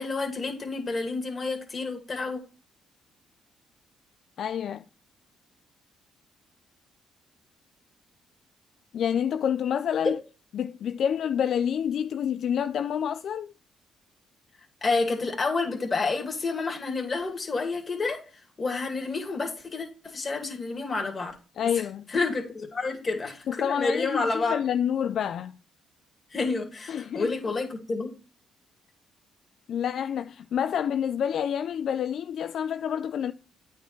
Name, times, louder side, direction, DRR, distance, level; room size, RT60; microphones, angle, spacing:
voice 1, 0.0-2.4 10.0-10.1 14.8-18.2 18.6-21.3 22.1-24.6 26.3-28.1, left 3 dB, 35° left, 2.4 m, -29 dB
voice 2, 4.4-4.8 8.9-10.2 10.5-13.5 21.6-22.1 23.5-25.5 26.9-27.3 29.7-33.3, left 8 dB, 65° left, 0.3 m, -28 dB
9.0 x 4.7 x 4.4 m
cardioid pair, 90°, 0 cm